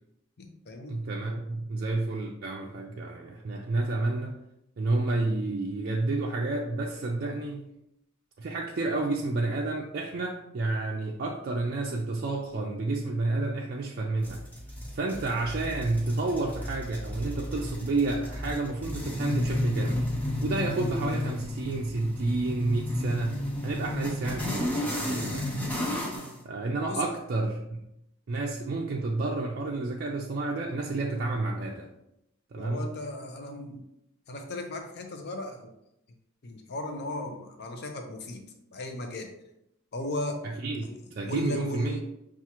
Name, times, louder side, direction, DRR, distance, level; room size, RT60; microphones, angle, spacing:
voice 1, 0.4-1.0 26.9-27.2 32.6-33.9 34.3-35.7 36.4-38.4 38.7-39.3 39.9-40.4 40.8-41.0 41.3-42.0, left 2 dB, 50° left, 4 dB, 0.6 m, -36 dB
voice 2, 0.9-4.4 4.8-7.6 8.4-14.4 14.9-20.1 20.4-25.5 26.4-27.8 28.3-31.9 32.5-32.9 40.6-40.9 41.2-42.0, right 2 dB, 50° right, -1 dB, 0.4 m, -30 dB
sound 1, 14.2-26.4, left 1 dB, 5° left, 0.7 m, -32 dB
5.9 x 2.4 x 2.9 m, 0.84 s
head